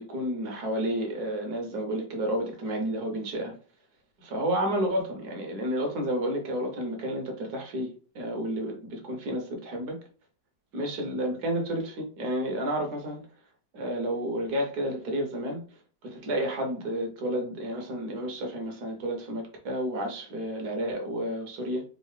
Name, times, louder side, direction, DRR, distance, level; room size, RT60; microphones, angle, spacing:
voice 1, 0.0-3.5 4.2-10.0 10.7-13.2 13.7-15.6 16.0-21.8, equal, 65° right, 1.5 m, -31 dB
4.6 x 2.5 x 3.2 m
omnidirectional pair, 1.9 m